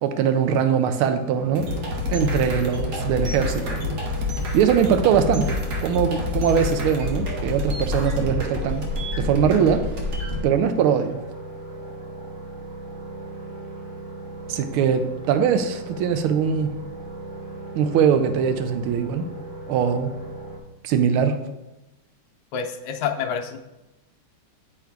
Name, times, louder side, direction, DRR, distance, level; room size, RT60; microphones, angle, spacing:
voice 1, 0.0-1.7 2.1-3.8 4.5-8.9 9.2-9.9 10.4-11.2 14.5-16.7 17.7-19.3 19.7-20.1 20.8-21.4, right 7 dB, 80° right, 8 dB, 1.5 m, -21 dB
sound 1, 1.3-20.6, right 2 dB, 30° right, 0.8 m, -38 dB
sound 2, 1.6-10.4, left 3 dB, 55° right, 1.5 m, -28 dB
voice 2, 22.5-23.6, left 7 dB, 80° left, 4 dB, 1.5 m, -27 dB
8.6 x 3.8 x 4.6 m, 0.98 s
omnidirectional pair, 2.3 m